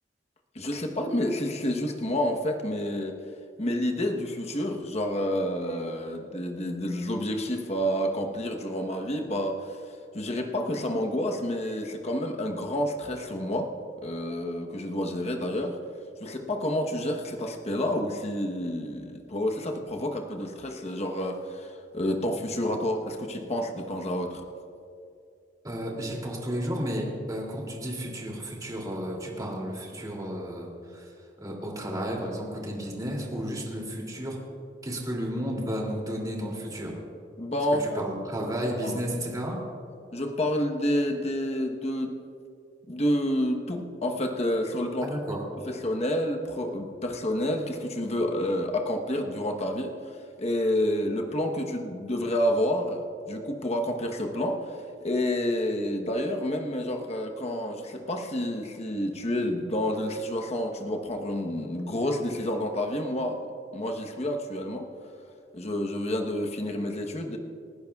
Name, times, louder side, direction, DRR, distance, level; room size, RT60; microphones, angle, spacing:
voice 1, 0.5-3.2 3.6-9.8 10.1-13.7 14.0-15.8 16.2-24.4 37.4-38.0 38.8-39.0 40.1-42.2 42.9-45.1 45.7-49.9 50.4-53.0 53.3-54.8 55.0-63.4 63.7-64.9 65.5-67.4, left 1 dB, 35° left, 3 dB, 1.1 m, -29 dB
voice 2, 25.6-31.1 31.4-34.4 34.8-36.9 37.8-39.6 45.0-45.4, equal, 20° right, -1 dB, 2.7 m, -33 dB
28.5 x 11.0 x 2.4 m, 2.5 s
head